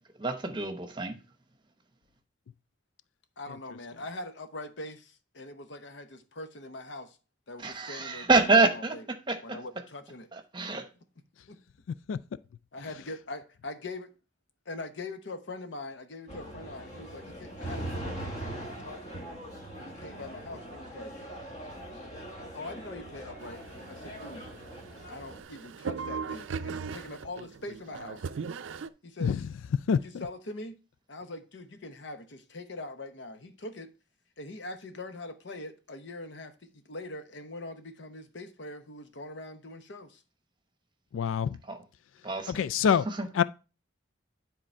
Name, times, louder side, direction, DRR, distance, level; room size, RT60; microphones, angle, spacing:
voice 1, 0.2-1.1 7.6-9.6 10.3-10.9 41.7-41.8 42.2-42.5 43.2-43.3, right 3 dB, 25° right, 0.9 m, -26 dB
voice 2, 3.4-7.2 7.5-9.0 9.4-10.3 11.5-11.6 12.7-14.1 14.7-19.3 19.8-21.1 22.5-24.5 25.1-28.3 29.0-29.4 30.0-30.8 31.1-33.9 34.4-40.2, left 2 dB, 70° left, 0.9 m, -42 dB
sound 1, 16.3-25.4, right 1 dB, 35° left, 1.4 m, -41 dB
sound 2, 23.4-28.9, right 5 dB, 85° right, 0.4 m, -39 dB
voice 3, 29.9-30.3 41.1-41.6 42.5-43.1 43.3-43.4, left 7 dB, 90° left, 0.3 m, -26 dB
10.0 x 3.8 x 4.4 m
head